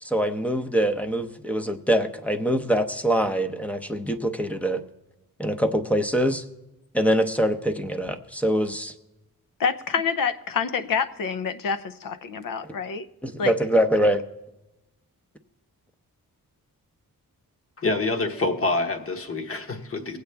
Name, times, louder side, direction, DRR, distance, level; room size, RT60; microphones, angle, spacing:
voice 1, 0.0-4.8 5.4-6.4 6.9-8.9 13.2-14.2, equal, 5° left, 9 dB, 0.7 m, -24 dB
voice 2, 9.6-13.1 13.4-13.5, left 6 dB, 70° left, 12 dB, 0.7 m, -27 dB
voice 3, 17.8-20.2, left 2 dB, 40° left, 5 dB, 1.2 m, -26 dB
20.0 x 8.2 x 3.4 m, 0.98 s
wide cardioid pair, 140°, 34 cm